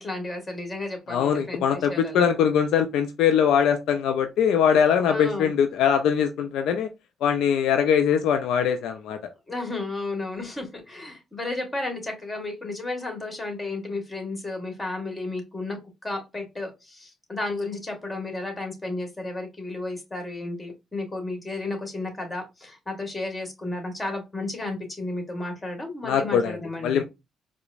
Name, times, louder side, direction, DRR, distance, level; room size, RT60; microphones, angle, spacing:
voice 1, 0.0-2.4 5.1-5.5 9.5-27.0, left 2 dB, 20° left, 1.5 m, -33 dB
voice 2, 1.1-6.9 7.2-9.2 26.0-26.6 26.8-27.0, left 8 dB, 75° left, 0.4 m, -22 dB
4.6 x 2.0 x 2.5 m
supercardioid pair, 60°, 0 cm